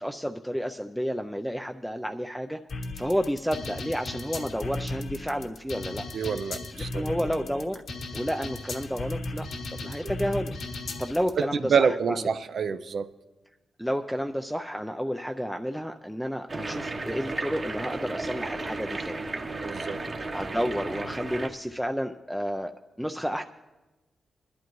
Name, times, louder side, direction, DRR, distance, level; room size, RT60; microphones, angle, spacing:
voice 1, 0.0-2.6 2.9-6.0 6.7-7.8 8.1-10.5 11.0-12.3 13.8-19.2 20.3-22.7 23.0-23.4, equal, ahead, 5 dB, 0.4 m, -31 dB
sound 1, 2.7-11.3, left 2 dB, 65° left, 1.2 m, -36 dB
voice 2, 6.1-7.0 9.8-9.9 11.7-13.1 19.6-20.0, right 6 dB, 60° right, 11 dB, 0.5 m, -27 dB
sound 2, 16.5-21.5, right 2 dB, 30° right, 1.0 m, -34 dB
21.5 x 11.5 x 3.1 m, 1.1 s
wide cardioid pair, 130°, 0 cm